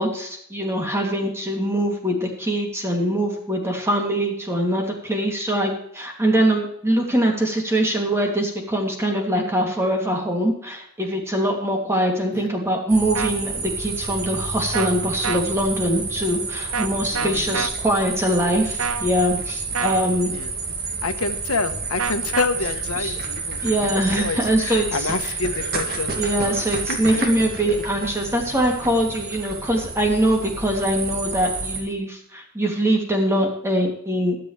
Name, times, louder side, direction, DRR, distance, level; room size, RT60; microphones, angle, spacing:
voice 1, 0.0-20.3 23.0-23.1 23.6-25.1 26.2-34.4, right 1 dB, 10° right, 1 dB, 2.7 m, -23 dB
sound 1, 12.9-31.8, right 4 dB, 45° right, 2.1 m, -30 dB
sound 2, 13.1-13.3 14.7-14.9 15.2-15.4 16.7-16.9 17.1-17.7 18.8-19.1 19.7-20.0 22.0-22.5, right 6 dB, 75° right, 0.8 m, -26 dB
voice 2, 17.1-17.7 20.3-20.5 21.0-26.2 26.9-27.7, left 4 dB, 75° left, 8 dB, 1.2 m, -28 dB
21.0 x 7.8 x 3.3 m, 0.69 s
head